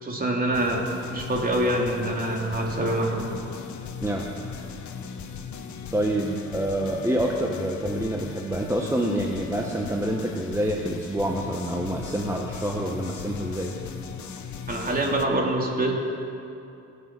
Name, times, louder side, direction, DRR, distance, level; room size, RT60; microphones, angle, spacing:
voice 1, 0.0-3.3 14.7-16.0, right 1 dB, 30° right, 0 dB, 3.0 m, -25 dB
sound 1, 0.5-15.2, left 5 dB, 70° left, 1.2 m, -38 dB
voice 2, 5.9-13.7, right 1 dB, 10° right, 0 dB, 1.2 m, -27 dB
24.5 x 8.3 x 6.1 m, 2.7 s
cardioid pair, 90°, 30 cm